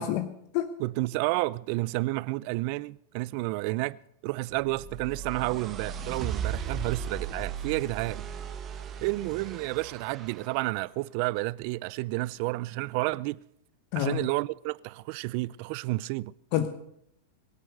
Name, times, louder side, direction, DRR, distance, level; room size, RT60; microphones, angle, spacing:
voice 1, 0.0-0.7 13.9-14.2 16.5-16.7, left 11 dB, 50° left, 1.0 m, -28 dB
voice 2, 0.8-4.0 4.2-8.3 9.0-13.4 14.0-16.3, right 21 dB, 50° right, 0.5 m, -30 dB
sound 1, 4.6-10.6, right 7 dB, 25° right, 1.5 m, -37 dB
22.0 x 8.2 x 6.7 m
supercardioid pair, 140°, 0 cm